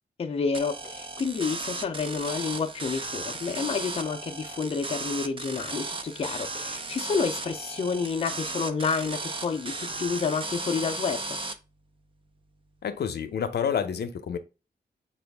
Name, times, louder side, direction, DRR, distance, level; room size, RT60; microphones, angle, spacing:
voice 1, 0.2-11.4, left 5 dB, 35° left, 0.4 m, -29 dB
sound 1, 0.5-11.5, right 3 dB, 30° right, 0.4 m, -35 dB
voice 2, 12.8-14.4, left 7 dB, 80° left, 0.6 m, -29 dB
6.0 x 2.4 x 3.3 m
wide cardioid pair, 170°, 17 cm